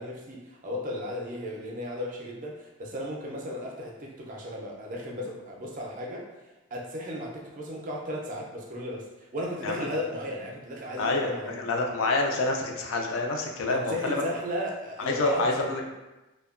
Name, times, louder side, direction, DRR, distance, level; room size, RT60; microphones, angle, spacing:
voice 1, 0.0-6.3 6.7-11.6 13.6-15.8, equal, 35° right, -1 dB, 0.4 m, -35 dB
voice 2, 11.0-11.3 11.5-14.2 15.0-15.8, left 2 dB, 60° left, 2 dB, 0.3 m, -27 dB
2.6 x 2.2 x 2.4 m, 1.1 s
head